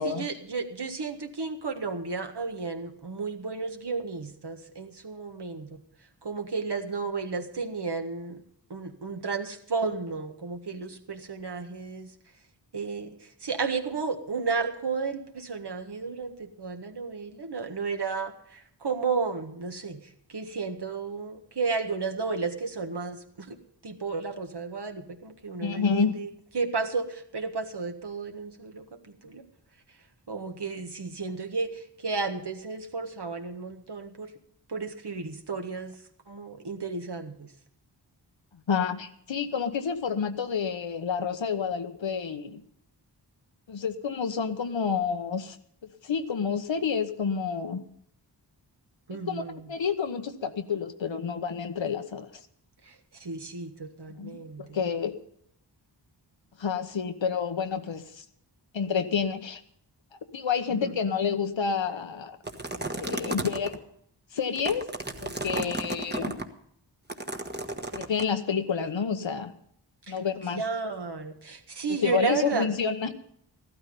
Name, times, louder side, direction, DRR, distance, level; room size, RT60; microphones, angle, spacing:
voice 1, 0.0-5.8 6.2-8.4 8.7-12.1 12.7-23.6 23.8-25.9 26.1-26.3 26.5-28.8 29.2-29.4 30.3-34.3 34.7-36.0 36.3-37.5 49.1-49.7 52.8-54.8 60.7-61.0 70.1-70.2 70.5-72.7, right 4 dB, 60° right, 5 dB, 1.6 m, -33 dB
voice 2, 25.6-26.2 38.7-42.6 43.7-45.6 45.8-47.8 49.1-49.4 49.7-52.3 54.2-54.3 54.6-55.2 56.6-58.2 58.7-59.6 60.3-62.4 62.9-63.8 64.3-64.9 65.2-66.4 67.9-69.5 70.1-70.6 72.0-73.3, left 6 dB, 80° left, 8 dB, 1.1 m, -29 dB
sound 1, 62.4-63.8 64.4-66.4 67.1-68.2, right 2 dB, 25° right, 1.3 m, -33 dB
14.5 x 12.5 x 5.4 m, 0.69 s
wide cardioid pair, 65°, 44 cm